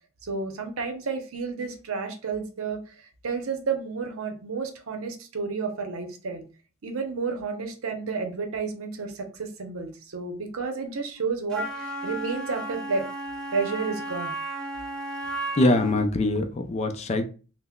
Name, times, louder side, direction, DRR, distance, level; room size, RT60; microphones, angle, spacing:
voice 1, 0.2-6.4 6.8-13.1 13.5-14.3, right 4 dB, 80° right, 0.7 m, -31 dB
Wind instrument woodwind instrument, 11.5-16.0, right 1 dB, 5° left, 1.6 m, -34 dB
voice 2, 15.6-17.2, left 2 dB, 30° left, 0.4 m, -23 dB
5.5 x 2.1 x 2.2 m
head